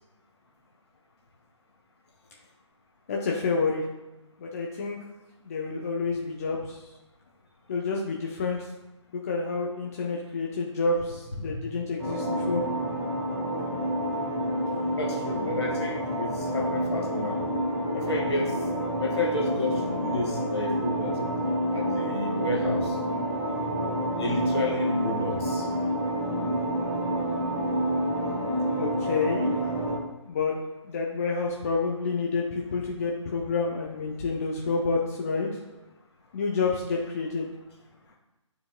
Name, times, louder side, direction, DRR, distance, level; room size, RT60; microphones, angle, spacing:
voice 1, 3.1-3.8 4.4-5.0 5.4-6.8 7.7-8.7 9.2-12.6 28.8-29.5 30.3-30.6 30.8-35.5 36.3-37.5, left 4 dB, 30° left, -1 dB, 0.6 m, -29 dB
sound 1, 12.0-30.0, equal, 10° right, 1.1 m, -28 dB
voice 2, 15.0-17.4 17.9-18.6 19.0-21.1 21.7-23.0 24.2-25.7, left 2 dB, 55° left, -1 dB, 1.7 m, -31 dB
11.0 x 4.8 x 2.2 m, 1.0 s
figure-of-eight pair, 145°, 16 cm